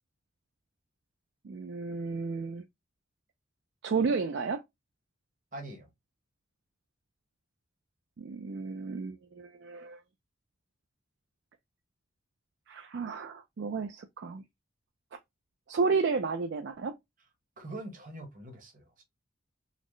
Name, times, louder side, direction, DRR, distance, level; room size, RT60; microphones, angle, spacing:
voice 1, 1.4-2.6 3.8-4.6 8.2-10.0 12.7-14.4 15.7-17.0, right 4 dB, 60° right, 0.4 m, -32 dB
voice 2, 5.5-5.9 17.6-19.0, right 1 dB, 45° right, 1.1 m, -43 dB
4.0 x 2.0 x 3.1 m
head